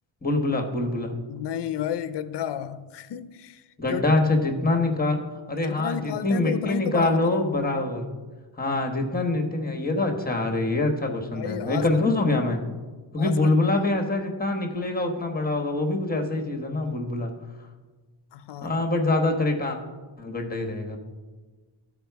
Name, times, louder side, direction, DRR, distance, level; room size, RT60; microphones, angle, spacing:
voice 1, 0.2-1.1 3.8-5.2 5.5-8.0 8.6-12.6 13.1-17.3 18.6-19.8 20.2-21.0, left 2 dB, 20° left, 1.3 m, -24 dB
voice 2, 1.3-3.6 3.9-4.1 5.5-7.4 11.3-12.1 13.2-13.4 13.8-13.9 18.3-18.9, left 9 dB, 60° left, 0.6 m, -32 dB
14.0 x 4.9 x 4.6 m
wide cardioid pair, 110°, 48 cm